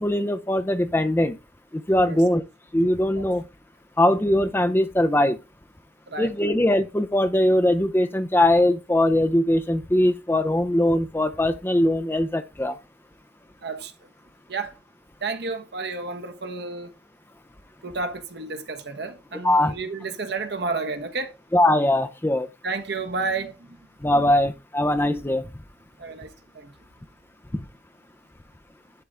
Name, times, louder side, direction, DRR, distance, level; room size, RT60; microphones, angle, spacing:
voice 1, 0.0-1.4 1.7-2.4 2.7-3.4 4.0-5.4 6.2-12.8 19.4-19.7 21.5-22.5 24.0-25.5 27.5-27.7, left 1 dB, 15° left, 0.6 m, -21 dB
voice 2, 6.1-6.5 13.6-13.9 14.5-14.7 15.2-16.9 17.8-21.3 22.6-24.3 26.0-26.7, right 3 dB, 65° right, 1.2 m, -31 dB
11.5 x 3.8 x 3.4 m
head